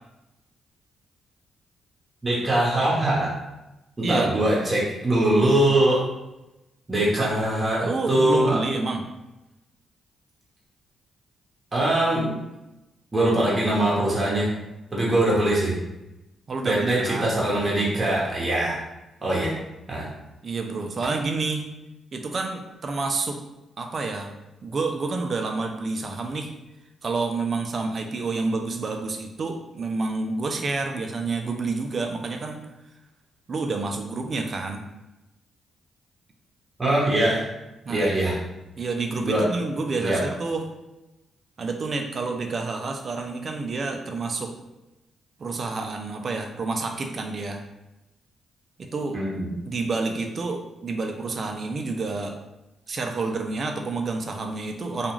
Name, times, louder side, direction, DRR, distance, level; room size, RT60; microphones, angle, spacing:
voice 1, 2.2-3.3 4.0-6.0 6.9-8.6 11.7-12.3 13.1-14.5 14.9-15.7 16.6-18.8 19.2-19.5 19.9-20.1 36.8-37.5 37.9-38.4 39.2-39.4 40.0-40.2 49.1-49.5, right 1 dB, 30° right, -5 dB, 1.0 m, -22 dB
voice 2, 4.0-4.3 7.2-7.3 7.8-9.0 16.5-17.3 20.4-21.6 22.1-23.4 23.8-24.3 24.6-26.5 27.0-32.6 33.5-34.8 37.8-38.1 38.8-40.6 41.6-44.5 45.4-47.6 48.8-49.2 49.7-52.4 52.9-55.1, right 3 dB, 50° right, 4 dB, 0.4 m, -29 dB
2.4 x 2.3 x 3.0 m, 0.97 s
cardioid pair, 65°, 0 cm